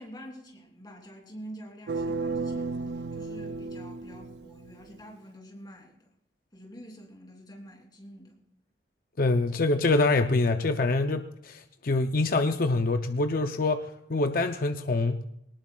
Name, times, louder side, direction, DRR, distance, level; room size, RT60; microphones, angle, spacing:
voice 1, 0.0-6.1 6.5-8.4, equal, 25° left, 1 dB, 3.1 m, -47 dB
sound 1, 1.9-4.9, right 3 dB, 70° right, 0.4 m, -34 dB
voice 2, 9.2-15.2, left 3 dB, 55° left, 7 dB, 0.6 m, -25 dB
21.0 x 19.0 x 2.3 m, 0.76 s
head